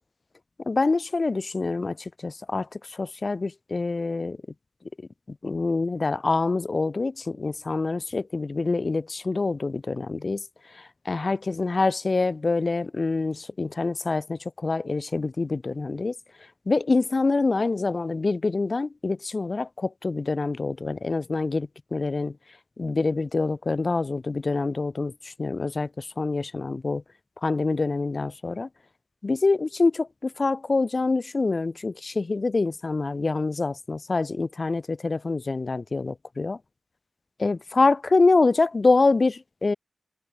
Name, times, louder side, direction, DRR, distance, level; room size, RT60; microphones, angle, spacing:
voice 1, 0.7-4.4 5.4-10.4 10.7-16.2 16.7-22.4 22.8-27.0 27.4-28.7 29.2-36.6 37.4-39.7, left 3 dB, 50° left, 0.5 m, -25 dB
open air
cardioid pair, 55°, 0 cm